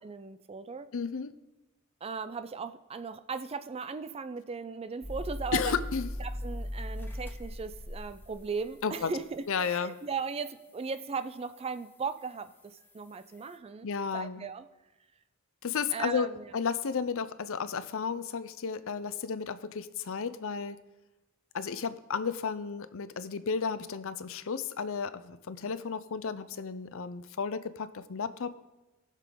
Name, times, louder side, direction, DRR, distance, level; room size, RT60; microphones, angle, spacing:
voice 1, 0.0-0.9 2.0-5.8 6.2-13.9 14.1-14.7 15.9-16.5, right 5 dB, 25° right, 12 dB, 0.4 m, -37 dB
voice 2, 0.9-1.3 5.5-6.1 8.8-9.1 9.5-10.0 13.8-14.5 15.6-16.3 16.5-20.8 21.5-28.5, left 6 dB, 65° left, 13 dB, 0.6 m, -33 dB
sound 1, 5.0-9.2 9.8-9.9 12.2-12.3, left 1 dB, 10° left, 0.9 m, -38 dB
19.0 x 6.6 x 3.8 m, 1.0 s
head